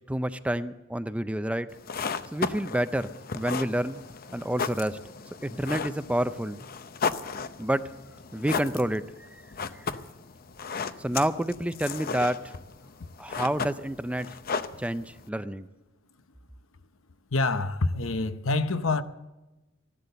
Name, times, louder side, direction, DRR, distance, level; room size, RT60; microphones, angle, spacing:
voice 1, 0.1-1.7 2.3-4.0 4.3-5.0 5.4-6.6 7.6-7.9 8.3-9.4 9.7-9.9 11.0-12.5 13.2-14.3 14.8-15.7, right 1 dB, 5° right, 0.4 m, -29 dB
sound 1, 1.7-15.3, left 5 dB, 50° left, 0.7 m, -35 dB
voice 2, 17.3-19.0, left 3 dB, 90° left, 0.8 m, -26 dB
16.0 x 12.0 x 6.7 m
head